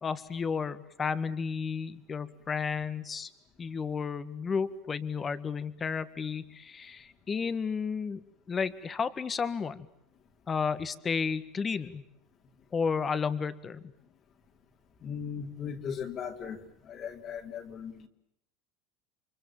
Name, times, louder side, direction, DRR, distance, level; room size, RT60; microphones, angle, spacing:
voice 1, 0.0-3.3 3.6-8.2 8.5-9.9 10.5-12.0 12.7-13.8, left 5 dB, 25° left, 12 dB, 1.9 m, -32 dB
voice 2, 15.0-16.6 16.8-18.1, left 7 dB, 40° left, 3 dB, 3.3 m, -38 dB
29.5 x 24.5 x 7.4 m, 0.78 s
supercardioid pair, 110°, 0 cm